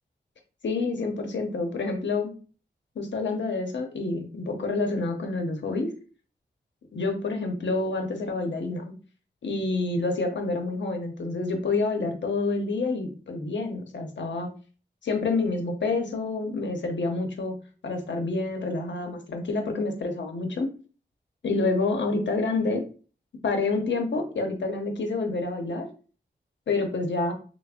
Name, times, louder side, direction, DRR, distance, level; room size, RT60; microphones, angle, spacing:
voice 1, 0.6-2.3 3.0-5.9 6.9-8.8 9.4-14.5 15.0-17.6 17.8-20.7 21.4-22.8 23.4-25.9 26.7-27.3, left 3 dB, 80° left, 3 dB, 0.7 m, -28 dB
3.2 x 2.1 x 3.6 m, 0.38 s
cardioid pair, 45°, 19 cm